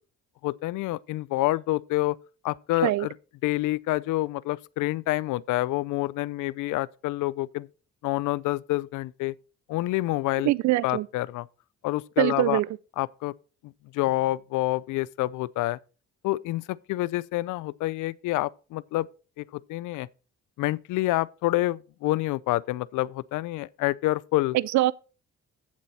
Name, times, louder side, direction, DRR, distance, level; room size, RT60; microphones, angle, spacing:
voice 1, 0.4-2.2 2.4-3.1 3.4-7.7 8.0-9.3 9.7-10.5 10.8-11.5 11.8-12.6 13.0-13.3 13.6-15.8 16.2-19.1 19.4-20.1 20.6-24.6, left 18 dB, 85° left, 0.5 m, -27 dB
voice 2, 10.4-11.1 12.2-12.7 24.5-24.9, right 16 dB, 70° right, 0.5 m, -23 dB
8.6 x 7.4 x 4.1 m
cardioid pair, 90°, 30 cm